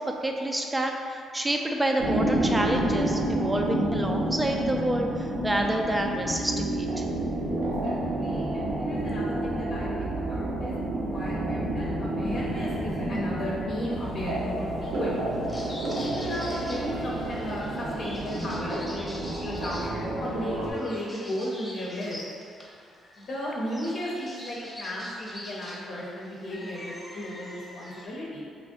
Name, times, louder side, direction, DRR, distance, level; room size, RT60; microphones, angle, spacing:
voice 1, 0.0-7.0, right 1 dB, 15° right, 2 dB, 0.4 m, -28 dB
sound 1, 2.0-20.7, right 1 dB, 80° right, 0.7 m, -30 dB
voice 2, 7.8-15.4 15.9-22.2 23.2-28.5, equal, 60° left, -6 dB, 0.7 m, -35 dB
sound 2, 12.2-18.6, right 2 dB, 45° right, 0.7 m, -42 dB
sound 3, 15.5-28.1, left 1 dB, 15° left, 1.0 m, -45 dB
3.2 x 2.5 x 3.7 m, 2.2 s
cardioid pair, 90°, 0 cm